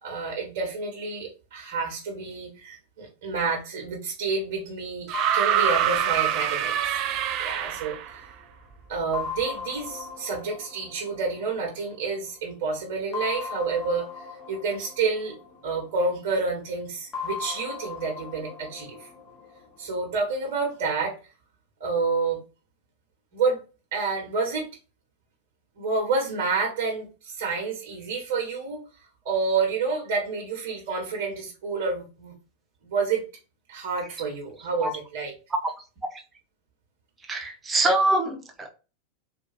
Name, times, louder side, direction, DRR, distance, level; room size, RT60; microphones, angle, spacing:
voice 1, 0.0-7.0 7.4-8.3 8.9-15.3 15.6-19.1 19.8-21.2 21.8-22.4 23.3-23.6 23.9-24.7 25.8-28.8 29.2-32.3 32.8-33.2 33.7-35.4, right 4 dB, 55° right, 1.4 m, -29 dB
sound 1, 5.1-8.5 9.1-12.1 13.1-16.2 17.1-20.2, left 6 dB, 15° left, 1.3 m, -39 dB
sound 2, 5.1-8.1 9.4-9.5, right 11 dB, 40° right, 0.5 m, -25 dB
voice 2, 37.3-38.7, right 2 dB, 15° right, 0.8 m, -24 dB
4.3 x 2.7 x 4.3 m
figure-of-eight pair, 90°, 0 cm